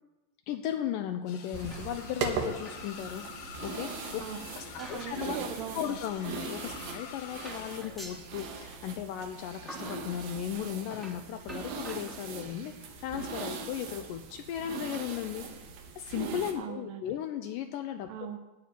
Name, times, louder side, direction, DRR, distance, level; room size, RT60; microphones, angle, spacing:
voice 1, 0.5-4.2 4.6-5.4 5.7-15.5 16.0-18.1, left 10 dB, 80° left, 5 dB, 2.2 m, -36 dB
sound 1, 1.3-7.8, left 7 dB, 65° left, 2.0 m, -47 dB
sound 2, 1.5-16.5, right 5 dB, 90° right, 3.0 m, -40 dB
sound 3, 1.7-2.3 2.6-2.9 3.3-3.4 4.2-5.3 5.6-5.8 6.6-6.7 7.0-7.2 7.4-8.6 9.2-9.3 9.7-10.1 10.8-12.6 13.3-13.4 13.7-13.8 14.2-14.3 14.4-14.5, equal, ahead, 0.8 m, -48 dB
voice 2, 4.2-4.5 4.8-6.0 16.6-17.1 18.1-18.4, right 8 dB, 65° right, 6 dB, 2.0 m, -40 dB
14.5 x 9.0 x 4.4 m, 1.0 s
omnidirectional pair, 4.0 m